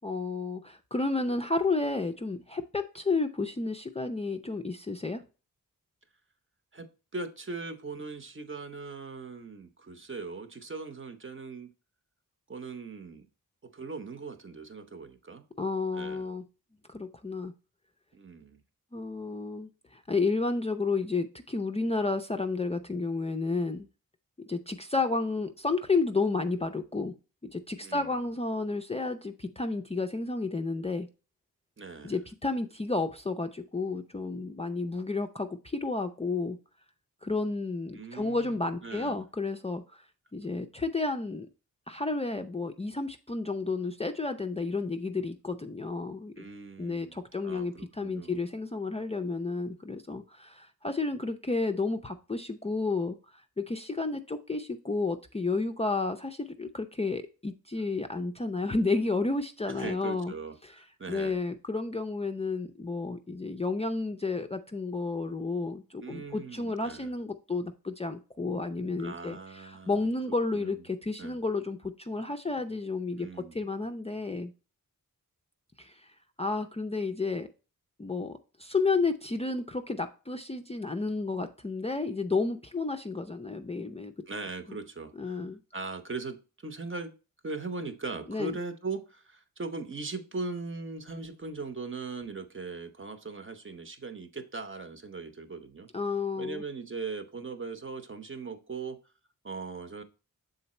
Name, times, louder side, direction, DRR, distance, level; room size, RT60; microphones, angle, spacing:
voice 1, 0.0-5.2 15.6-16.4 16.9-17.5 18.9-23.9 24.5-27.1 27.4-31.1 32.0-36.6 37.2-40.0 40.3-41.5 41.9-46.4 46.8-53.2 53.6-60.3 60.6-60.7 61.1-74.5 75.8-76.1 76.4-77.5 78.0-84.1 84.7-84.8 85.2-85.6 88.3-88.5 95.9-96.6, left 3 dB, 20° left, 6 dB, 0.4 m, -31 dB
voice 2, 7.1-11.7 12.5-13.2 13.7-15.4 15.9-16.3 18.1-18.6 27.8-28.2 31.8-32.2 37.9-39.2 46.4-48.4 59.7-61.4 66.0-67.1 69.0-70.0 70.5-70.8 71.2-71.4 73.1-73.6 84.3-87.1 87.4-95.9 96.4-99.0 99.4-100.0, right 3 dB, 35° right, 9 dB, 0.8 m, -40 dB
6.9 x 3.9 x 4.2 m, 0.33 s
wide cardioid pair, 95°, 34 cm